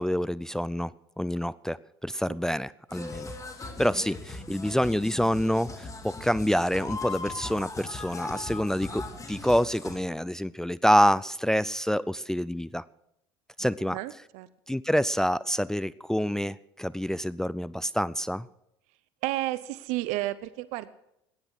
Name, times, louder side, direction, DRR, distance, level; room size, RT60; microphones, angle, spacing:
voice 1, 0.0-3.3 3.8-9.0 9.3-12.8 13.6-14.0 14.7-18.5, equal, 5° left, 18 dB, 0.5 m, -27 dB
sound 1, 2.9-10.0, left 3 dB, 25° left, 2.8 m, -39 dB
voice 2, 13.9-14.5 19.2-20.9, right 17 dB, 65° right, 16 dB, 0.8 m, -32 dB
16.0 x 10.5 x 6.3 m, 0.81 s
hypercardioid pair, 75°, 13 cm